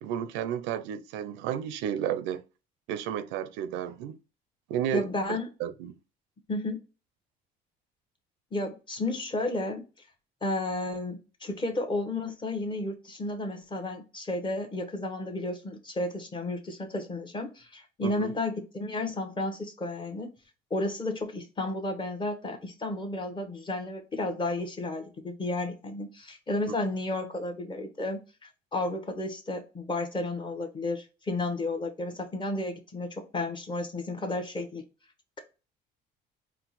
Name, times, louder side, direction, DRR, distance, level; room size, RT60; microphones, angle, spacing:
voice 1, 0.0-2.4 2.9-4.2 4.7-5.9 18.0-18.3, right 9 dB, 85° right, 0.4 m, -32 dB
voice 2, 4.9-5.5 6.5-6.8 8.5-9.9 10.4-20.3 20.7-34.8, left 2 dB, 25° left, 0.9 m, -32 dB
4.5 x 2.1 x 4.0 m
cardioid pair, 110°, 19 cm